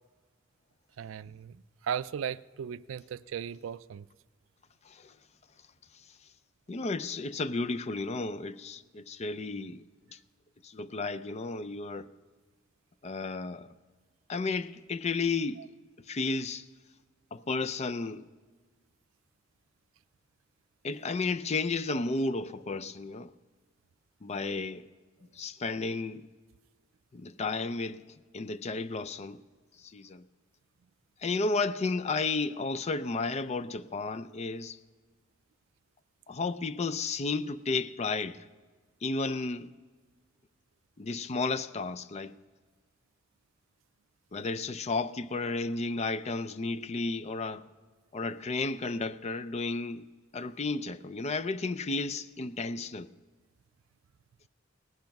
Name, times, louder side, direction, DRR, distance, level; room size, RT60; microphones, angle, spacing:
voice 1, 1.0-4.1, right 8 dB, 90° right, 0.4 m, -37 dB
voice 2, 6.7-9.8 10.1-10.2 10.6-12.1 13.0-13.7 14.3-15.6 16.1-16.6 17.3-18.2 20.8-23.3 24.2-24.9 25.3-26.3 27.1-28.0 28.3-29.4 29.8-30.2 31.2-34.8 36.3-38.4 39.0-39.7 41.0-42.3 44.3-47.7 48.1-50.0 50.3-53.1, left 3 dB, 35° left, 0.4 m, -33 dB
18.5 x 10.5 x 5.3 m
head